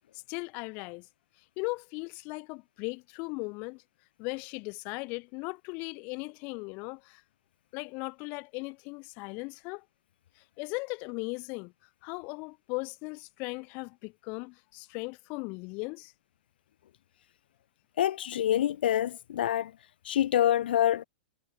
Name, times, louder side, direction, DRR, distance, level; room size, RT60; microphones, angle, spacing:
voice 1, 0.3-1.1 1.6-3.8 4.2-7.2 7.7-9.8 10.6-11.7 12.0-16.1, left 30 dB, 30° left, 1.0 m, -38 dB
voice 2, 18.0-19.7 20.0-21.0, left 11 dB, 80° left, 0.4 m, -26 dB
supercardioid pair, 175°, 5 cm